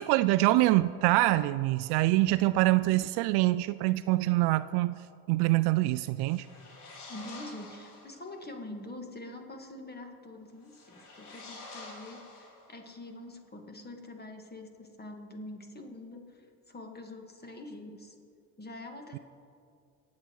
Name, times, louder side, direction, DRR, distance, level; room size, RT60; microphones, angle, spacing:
voice 1, 0.0-5.0 5.3-6.5, right 17 dB, 60° right, 14 dB, 0.5 m, -25 dB
sound 1, 6.2-8.2 10.6-12.9, left 3 dB, 90° left, 3.0 m, -48 dB
voice 2, 7.1-18.2 18.6-19.2, left 2 dB, 20° left, 4 dB, 2.0 m, -45 dB
24.5 x 8.5 x 4.7 m, 2.4 s
supercardioid pair, 85°, 44 cm